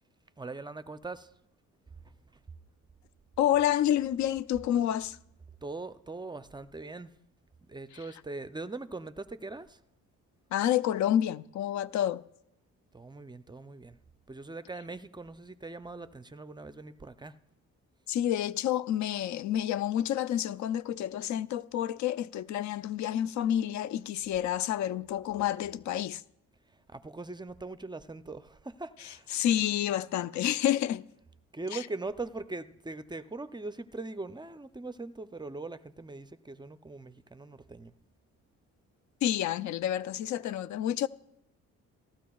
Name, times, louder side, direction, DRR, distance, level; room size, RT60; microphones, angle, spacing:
voice 1, 0.4-1.3 2.0-2.4 5.6-7.1 7.7-9.8 12.9-14.0 14.3-17.4 26.7-29.3 31.5-37.9, right 3 dB, 15° right, 0.5 m, -41 dB
voice 2, 3.4-5.2 10.5-12.2 18.1-26.2 29.3-31.0 31.7-31.8 39.2-41.1, left 11 dB, 70° left, 0.5 m, -29 dB
17.5 x 14.5 x 2.3 m
cardioid pair, 90°, 30 cm